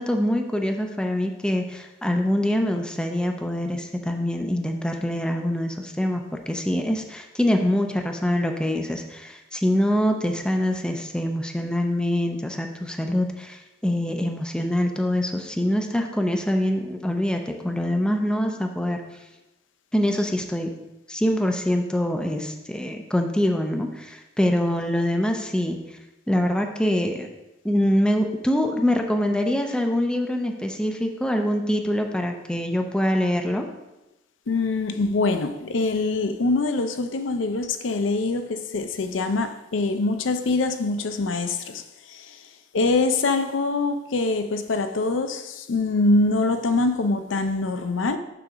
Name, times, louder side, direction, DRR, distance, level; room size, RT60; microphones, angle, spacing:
voice 1, 0.0-19.0 19.9-20.7 21.1-25.8 26.3-27.3 27.6-33.7, left 1 dB, 5° left, 0.6 m, -24 dB
voice 2, 34.5-42.4 42.7-48.2, left 3 dB, 90° left, 0.5 m, -24 dB
6.7 x 3.8 x 6.0 m
head